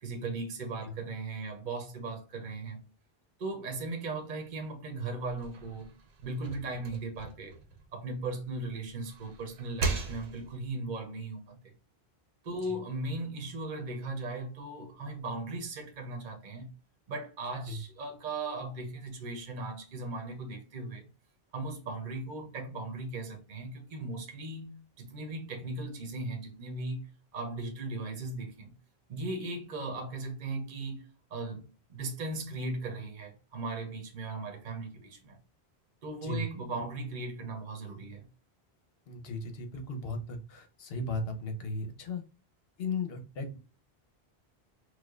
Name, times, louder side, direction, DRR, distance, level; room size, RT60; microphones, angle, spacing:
voice 1, 0.0-2.8 3.4-5.9 6.2-7.6 7.9-11.7 12.4-16.7 17.1-21.1 21.5-27.0 27.3-28.7 29.1-35.4 36.0-38.3, right 2 dB, 50° right, 0.8 m, -38 dB
sound 1, 5.3-8.5 8.9-10.7, right 3 dB, 85° right, 1.0 m, -38 dB
voice 2, 39.1-42.2 42.8-43.6, left 3 dB, 70° left, 1.0 m, -36 dB
4.6 x 2.2 x 2.3 m
omnidirectional pair, 1.0 m